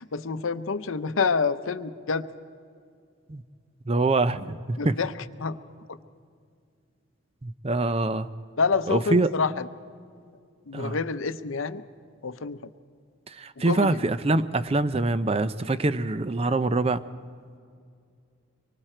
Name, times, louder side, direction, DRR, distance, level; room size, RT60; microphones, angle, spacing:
voice 1, 0.0-2.3 4.8-5.1 5.4-5.6 5.9-6.0 8.6-9.7 10.7-11.8 12.2-12.6 13.6-14.0, left 4 dB, 75° left, 12 dB, 0.7 m, -27 dB
voice 2, 3.9-4.9 7.4-8.3 8.9-9.4 10.7-11.0 13.3-17.0, right 2 dB, 30° right, 14 dB, 0.5 m, -25 dB
25.0 x 24.0 x 4.4 m, 2.3 s
head